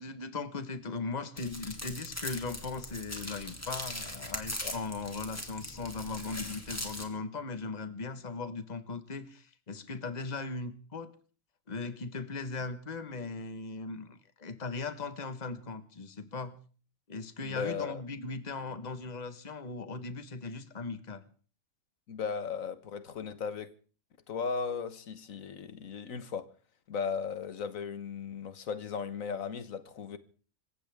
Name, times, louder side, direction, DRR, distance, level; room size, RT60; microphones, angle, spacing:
voice 1, 0.0-11.1 11.7-16.6 17.1-21.2, left 4 dB, 35° left, 1.4 m, -38 dB
sound 1, 1.4-7.0, left 1 dB, 10° left, 2.6 m, -40 dB
voice 2, 17.4-18.0 22.1-23.7 24.3-26.5 26.9-30.2, left 5 dB, 85° left, 1.6 m, -36 dB
26.5 x 15.5 x 3.5 m
omnidirectional pair, 1.4 m